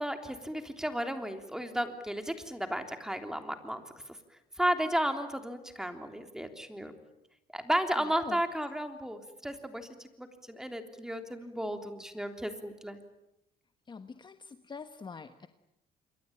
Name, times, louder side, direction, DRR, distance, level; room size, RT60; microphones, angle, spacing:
voice 1, 0.0-3.8 4.6-6.9 7.5-13.0, equal, 5° right, 6 dB, 3.4 m, -34 dB
voice 2, 8.0-8.4 13.9-15.5, left 5 dB, 25° left, 9 dB, 1.3 m, -44 dB
28.0 x 23.0 x 8.8 m, 0.87 s
cardioid pair, 110°, 17 cm